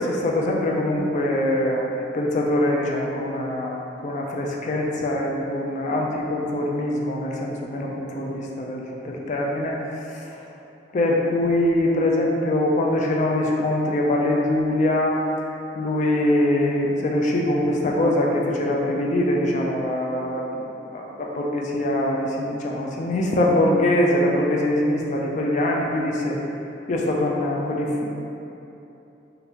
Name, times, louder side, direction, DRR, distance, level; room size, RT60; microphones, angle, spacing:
voice 1, 0.0-9.8 10.9-15.2 15.8-20.6 20.9-26.4 26.9-28.1, left 1 dB, 40° left, -1 dB, 0.3 m, -23 dB
2.8 x 2.5 x 3.4 m, 2.9 s
head